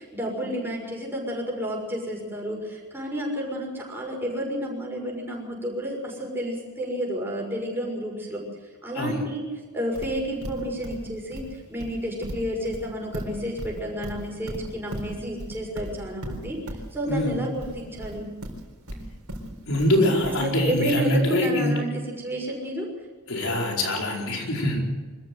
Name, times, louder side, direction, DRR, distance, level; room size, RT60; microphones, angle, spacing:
voice 1, 0.0-8.4 8.8-9.4 9.7-18.3 20.4-21.9 22.2-22.9, equal, 10° right, -2 dB, 6.1 m, -31 dB
Livestock farm animals working animals, 9.9-20.8, equal, 75° right, 4.3 m, -37 dB
voice 2, 19.6-21.8 23.3-24.8, left 1 dB, 70° left, 0 dB, 4.8 m, -24 dB
25.5 x 14.0 x 8.1 m, 1.4 s
head